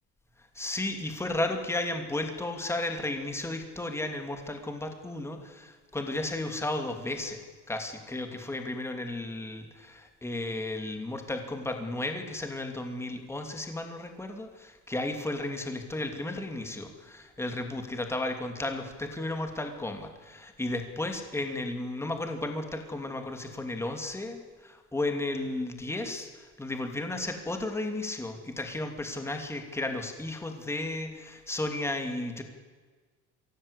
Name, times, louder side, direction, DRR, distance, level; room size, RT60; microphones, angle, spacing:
voice 1, 0.5-7.4 7.7-32.4, left 2 dB, 10° left, 5 dB, 2.7 m, -34 dB
24.5 x 17.0 x 8.3 m, 1.4 s
cardioid pair, 150°, 33 cm